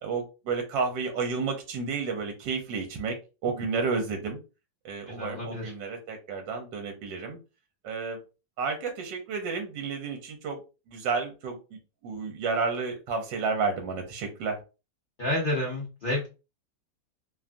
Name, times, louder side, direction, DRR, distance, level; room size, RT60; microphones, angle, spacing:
voice 1, 0.0-3.1 3.4-4.4 4.8-7.4 7.8-8.2 8.6-10.6 10.9-11.6 12.0-14.6, right 4 dB, 80° right, 3 dB, 1.3 m, -31 dB
voice 2, 5.1-5.7 15.2-16.3, left 1 dB, 70° left, -2 dB, 0.4 m, -30 dB
3.1 x 2.3 x 2.5 m, 0.30 s
omnidirectional pair, 2.0 m